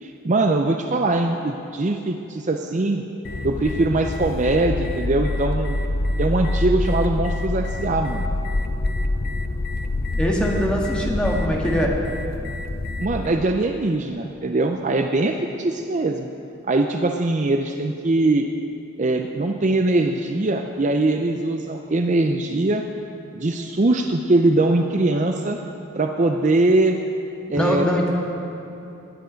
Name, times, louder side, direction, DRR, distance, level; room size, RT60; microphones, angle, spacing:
voice 1, 0.0-3.0 3.4-5.8 6.2-8.2 13.0-16.3 16.7-18.5 19.0-22.9 23.3-25.6 25.9-27.0 27.5-27.9, right 2 dB, 35° right, 4 dB, 0.5 m, -21 dB
sound 1, 3.2-13.3, left 2 dB, 45° left, 0.6 m, -26 dB
voice 2, 10.2-11.9 27.5-28.1, equal, 5° left, -3 dB, 1.6 m, -22 dB
20.0 x 9.3 x 5.1 m, 3.0 s
head